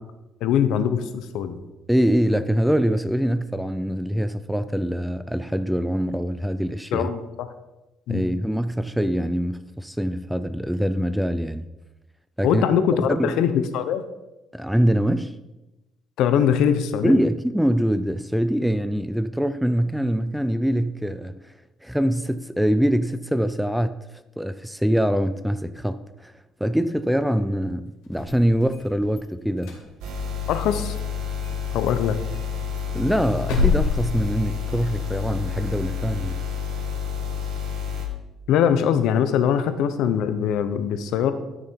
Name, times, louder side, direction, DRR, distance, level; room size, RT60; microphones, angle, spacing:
voice 1, 0.4-1.6 6.9-7.2 8.1-8.2 12.4-14.0 16.2-17.1 30.5-31.0 31.7-32.2 38.5-41.3, left 8 dB, 70° left, 0.9 m, -22 dB
voice 2, 1.9-7.1 8.1-11.7 12.4-12.6 13.1-13.4 14.5-15.3 17.0-21.4 21.8-23.9 24.4-26.3 26.6-29.8 32.9-36.4, equal, ahead, 0.3 m, -23 dB
sound 1, 28.0-29.2 29.6-30.7 31.0-31.1 31.4-31.6 31.9-32.0 32.3-34.9, left 5 dB, 85° left, 2.7 m, -28 dB
sound 2, 30.0-38.1, left 7 dB, 85° right, 1.9 m, -29 dB
12.5 x 6.7 x 4.6 m
cardioid pair, 165°, 0 cm